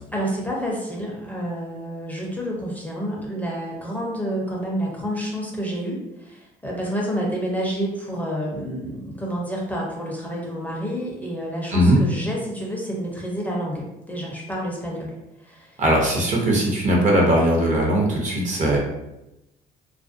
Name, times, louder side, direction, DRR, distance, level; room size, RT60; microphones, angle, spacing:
voice 1, 0.1-15.8, equal, 10° left, -3 dB, 0.5 m, -29 dB
voice 2, 15.8-18.8, right 1 dB, 45° right, -2 dB, 0.7 m, -19 dB
2.4 x 2.1 x 2.5 m, 0.91 s
cardioid pair, 110°, 17 cm